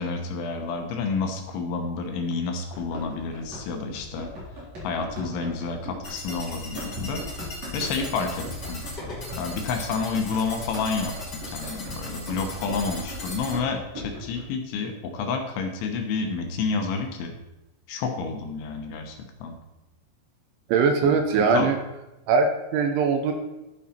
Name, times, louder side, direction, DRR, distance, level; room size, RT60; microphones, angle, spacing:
voice 1, 0.0-4.3 4.8-7.2 7.7-8.8 9.4-17.4 17.9-19.6 21.0-21.7, left 4 dB, 75° left, 3 dB, 3.3 m, -30 dB
Run, 2.7-14.4, equal, 35° right, 4.5 m, -39 dB
sound 1, 6.0-13.5, left 1 dB, 25° left, 3.0 m, -38 dB
voice 2, 20.7-21.8 22.3-23.3, right 5 dB, 75° right, 5 dB, 3.0 m, -21 dB
12.5 x 9.0 x 4.4 m, 0.98 s
omnidirectional pair, 5.9 m